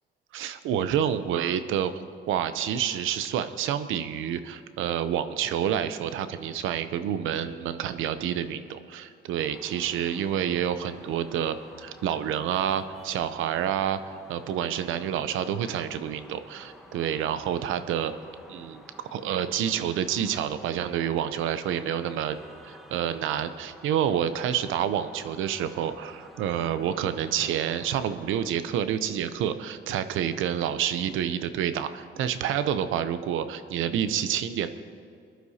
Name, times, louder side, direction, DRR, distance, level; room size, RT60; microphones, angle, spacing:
voice 1, 0.3-1.9 2.3-14.0 14.3-18.1 18.5-22.4 22.6-34.7, right 9 dB, 85° right, 12 dB, 0.7 m, -28 dB
sound 1, 9.4-28.5, left 1 dB, ahead, 1.3 m, -51 dB
21.0 x 11.5 x 2.8 m, 2.4 s
cardioid pair, 90°, 20 cm